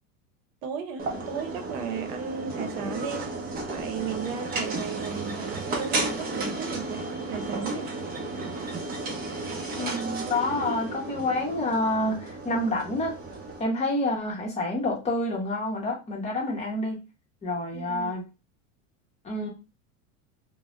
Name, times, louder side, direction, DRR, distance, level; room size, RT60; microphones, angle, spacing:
voice 1, 0.6-3.3 3.7-7.9 17.7-18.1, right 6 dB, 85° right, 0.8 m, -35 dB
sound 1, 1.0-13.6, right 2 dB, 25° right, 0.6 m, -33 dB
voice 2, 9.8-13.1 13.6-17.0 17.4-18.2 19.2-19.5, left 2 dB, 15° left, 0.8 m, -28 dB
3.1 x 2.1 x 2.4 m
supercardioid pair, 140°, 39 cm